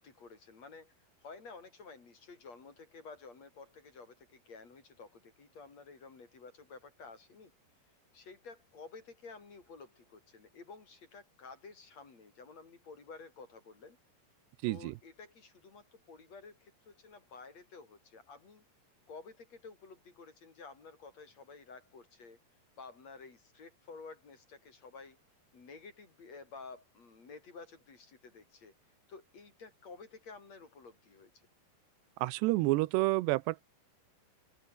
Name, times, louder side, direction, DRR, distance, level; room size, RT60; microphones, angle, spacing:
voice 1, 0.0-7.5 8.1-14.0 14.6-18.6 19.1-22.4 22.8-25.2 25.5-28.7 29.1-31.3, left 4 dB, 40° left, 5.0 m, -52 dB
voice 2, 14.6-14.9 32.2-33.6, right 20 dB, 85° right, 2.8 m, -29 dB
open air
omnidirectional pair, 4.9 m